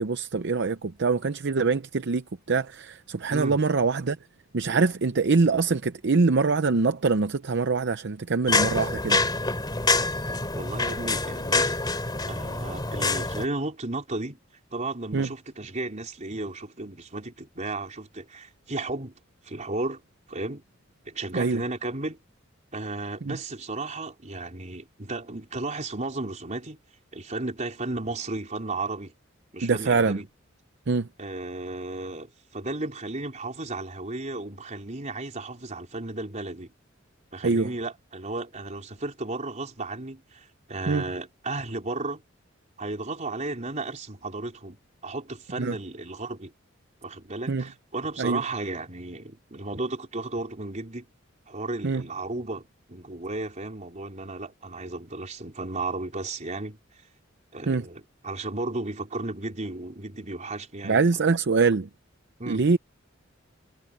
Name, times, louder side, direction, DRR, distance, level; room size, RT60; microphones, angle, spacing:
voice 1, 0.0-4.2 4.5-9.2 15.1-15.3 21.3-21.6 23.3-23.4 29.6-30.2 30.9-31.1 37.4-37.7 40.9-41.0 45.6-45.7 47.5-47.6 48.2-48.4 51.8-52.0 57.7-57.8 60.8-61.9 62.5-62.8, right 4 dB, 60° right, 0.7 m, -24 dB
sound 1, 8.5-13.5, left 3 dB, 20° left, 2.9 m, -26 dB
voice 2, 10.5-11.7 12.3-14.4 14.7-19.1 19.4-20.0 20.3-20.6 21.1-22.2 22.7-26.8 27.1-29.1 29.5-30.3 31.2-36.7 37.3-42.2 42.8-44.8 45.0-46.5 47.0-51.0 51.5-56.8 57.5-61.2 62.4-62.8, right 2 dB, 35° right, 4.1 m, -34 dB
head